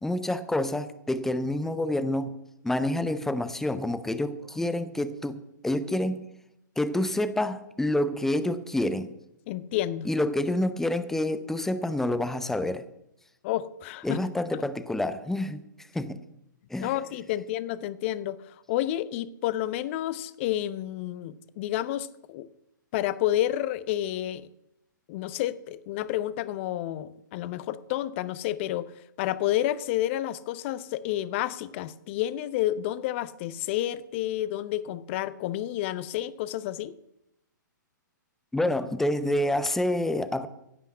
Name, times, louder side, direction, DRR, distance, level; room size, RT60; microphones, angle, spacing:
voice 1, 0.0-2.4 2.6-6.2 6.8-9.1 10.0-12.8 14.0-15.6 15.9-16.2 16.7-16.9 38.5-40.5, left 1 dB, 5° left, 13 dB, 0.7 m, -28 dB
voice 2, 9.5-10.1 13.4-14.2 14.5-14.6 16.8-22.5 22.9-24.5 25.1-36.9, left 13 dB, 40° left, 17 dB, 0.7 m, -30 dB
16.0 x 5.7 x 8.4 m, 0.83 s
figure-of-eight pair, 125°, 11 cm